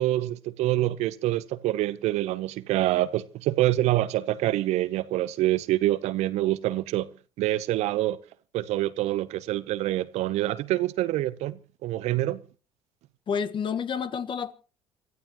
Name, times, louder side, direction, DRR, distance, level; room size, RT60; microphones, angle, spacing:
voice 1, 0.0-7.1 7.4-8.2 8.5-12.4, right 15 dB, 65° right, 0.9 m, -26 dB
voice 2, 13.3-14.5, left 6 dB, 45° left, 1.3 m, -29 dB
28.5 x 14.5 x 3.0 m
hypercardioid pair, 65°, 12 cm